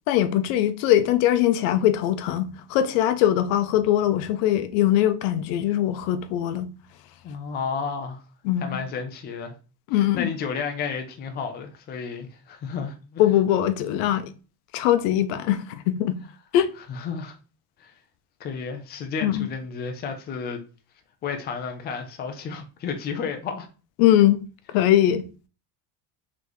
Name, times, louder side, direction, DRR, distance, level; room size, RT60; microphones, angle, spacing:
voice 1, 0.1-6.7 8.4-8.8 9.9-10.3 13.2-14.3 14.7-16.2 16.5-16.7 19.2-19.5 24.0-24.4 24.7-25.2, left 12 dB, 80° left, 0.7 m, -21 dB
voice 2, 7.2-8.2 8.6-9.5 9.9-13.2 16.9-17.4 17.8-17.9 18.4-20.6 21.2-23.7, left 5 dB, 25° left, 0.5 m, -32 dB
4.0 x 3.4 x 3.1 m
cardioid pair, 160°, 44 cm